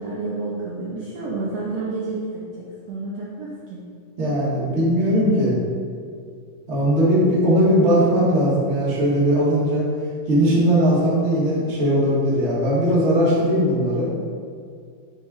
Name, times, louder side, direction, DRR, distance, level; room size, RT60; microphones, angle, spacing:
voice 1, 0.0-3.8, right 3 dB, 90° right, -6 dB, 1.4 m, -30 dB
voice 2, 4.2-5.5 6.7-9.8 10.3-14.1, equal, 55° right, -7 dB, 0.8 m, -19 dB
4.9 x 4.1 x 4.8 m, 2.2 s
omnidirectional pair, 3.9 m